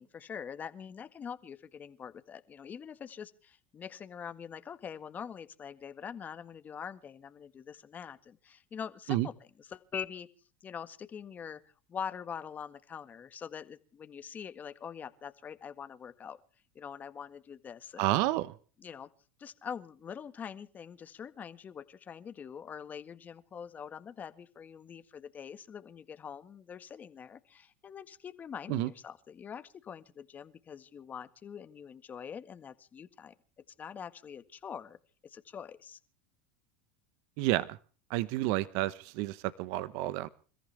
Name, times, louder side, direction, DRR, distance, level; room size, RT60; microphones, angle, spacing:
voice 1, 0.0-10.3 10.6-11.6 11.9-16.4 16.7-18.1 18.8-19.1 19.4-33.3 33.8-35.0 35.2-36.0, left 7 dB, 30° left, 11 dB, 1.6 m, -44 dB
voice 2, 18.0-18.5 28.7-28.9 37.4-37.7 38.1-40.3, right 17 dB, 60° right, 16 dB, 1.0 m, -30 dB
28.5 x 14.5 x 3.4 m, 0.39 s
hypercardioid pair, 100°, 6 cm